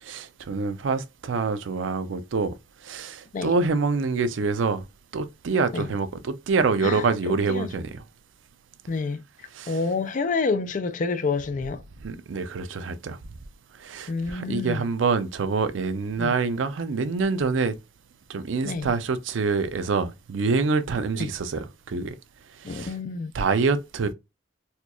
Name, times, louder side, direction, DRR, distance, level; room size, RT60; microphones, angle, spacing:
voice 1, 0.0-2.5 2.8-4.8 5.1-8.0 9.5-9.8 12.0-13.2 13.8-17.7 18.3-22.1 22.6-22.9 23.3-24.1, right 4 dB, 85° right, 0.5 m, -26 dB
voice 2, 6.8-7.7 8.9-9.2 9.7-11.8 14.1-14.8 16.2-16.3 18.6-18.9 21.2-21.3 22.6-23.3, left 4 dB, 45° left, 0.4 m, -28 dB
4.3 x 2.3 x 2.3 m
head